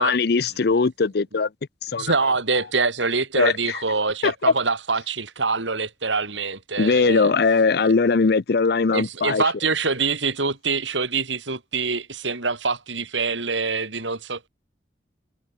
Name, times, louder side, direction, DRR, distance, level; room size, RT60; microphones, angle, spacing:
voice 1, 0.0-1.5 1.8-2.1 3.4-3.8 4.2-4.3 6.8-9.4, left 4 dB, 55° left, 0.5 m, -20 dB
voice 2, 2.0-7.3 8.9-14.5, right 4 dB, 80° right, 3.9 m, -25 dB
head